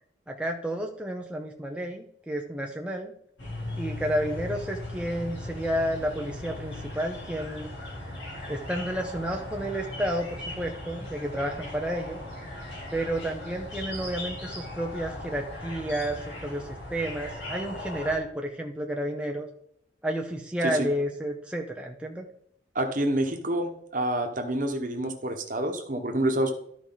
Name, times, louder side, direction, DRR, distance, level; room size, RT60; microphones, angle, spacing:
voice 1, 0.3-3.1 3.8-7.7 8.5-12.2 12.9-19.5 20.0-22.2, right 1 dB, 5° right, 1 dB, 0.6 m, -31 dB
sound 1, 3.4-18.2, left 1 dB, 70° left, 3.7 m, -38 dB
voice 2, 22.7-26.5, right 1 dB, 45° right, 5 dB, 1.2 m, -28 dB
13.0 x 4.8 x 3.9 m, 0.68 s
head